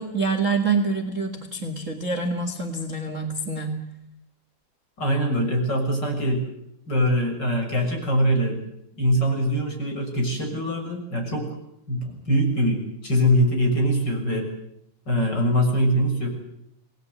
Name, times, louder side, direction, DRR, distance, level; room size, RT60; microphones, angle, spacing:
voice 1, 0.0-3.8, right 3 dB, 25° right, 6 dB, 2.2 m, -26 dB
voice 2, 5.0-6.4 6.9-8.6 9.0-11.5 11.9-14.5 15.1-16.3, equal, 35° left, 3 dB, 7.1 m, -23 dB
28.5 x 19.5 x 8.1 m, 0.78 s
omnidirectional pair, 3.5 m